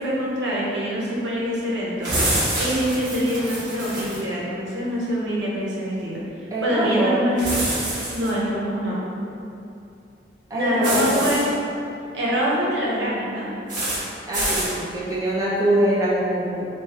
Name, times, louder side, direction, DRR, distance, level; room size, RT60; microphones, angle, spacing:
voice 1, 0.0-7.5 8.1-9.0 10.5-11.6 12.1-13.5, equal, 80° right, -6 dB, 1.0 m, -25 dB
sound 1, 2.0-4.2 7.4-8.3 10.8-11.4 13.7-14.0 14.3-14.7, right 1 dB, 45° right, 1.4 m, -26 dB
voice 2, 6.5-7.2 10.5-11.3 14.3-16.7, right 1 dB, 20° right, -7 dB, 0.8 m, -23 dB
3.2 x 3.0 x 4.3 m, 2.7 s
head